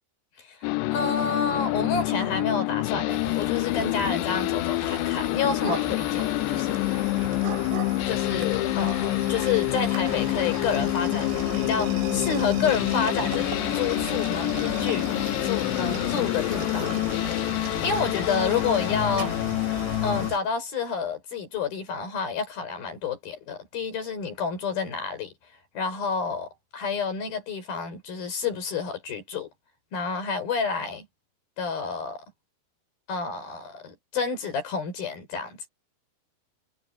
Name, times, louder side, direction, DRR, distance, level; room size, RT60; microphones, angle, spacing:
voice 1, 0.4-7.0 8.1-13.5 13.7-15.1 15.4-17.0 17.6-19.4 20.0-25.3 25.7-29.5 29.9-31.1 31.6-32.2 33.1-35.6, left 5 dB, 55° left, 6.5 m, -29 dB
sound 1, 0.6-20.3, left 22 dB, 85° left, 2.4 m, -27 dB
sound 2, 3.1-20.4, right 7 dB, 75° right, 5.0 m, -37 dB
omnidirectional pair, 5.3 m